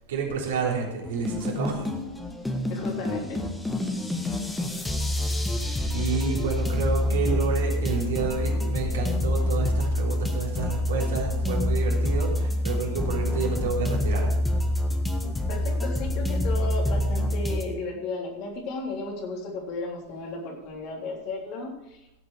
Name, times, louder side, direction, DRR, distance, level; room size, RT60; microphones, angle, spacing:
voice 1, 0.1-1.9 5.9-14.3, right 5 dB, 65° right, -2 dB, 3.5 m, -30 dB
sound 1, 1.1-17.6, left 1 dB, 10° left, 1.6 m, -27 dB
voice 2, 2.7-3.4 15.5-22.2, left 2 dB, 50° left, -1 dB, 3.5 m, -34 dB
16.5 x 8.1 x 4.8 m, 0.86 s
figure-of-eight pair, 90°, 0 cm